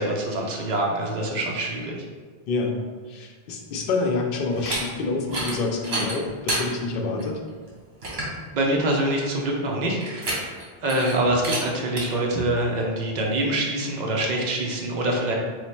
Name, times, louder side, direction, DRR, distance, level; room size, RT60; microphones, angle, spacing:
voice 1, 0.0-2.0 8.5-10.5 10.8-15.3, right 1 dB, 50° right, 0 dB, 0.7 m, -25 dB
voice 2, 2.5-2.8 3.1-7.4, left 3 dB, 65° left, 1 dB, 0.7 m, -27 dB
sound 1, 4.5-4.8 5.2-5.5 5.8-6.6 7.2-7.3 7.7-7.8 8.0-8.3 10.0-10.6 10.9-11.1 11.4-11.6 12.0-12.1, right 2 dB, 80° right, 1.2 m, -28 dB
3.1 x 2.1 x 4.2 m, 1.5 s
omnidirectional pair, 1.0 m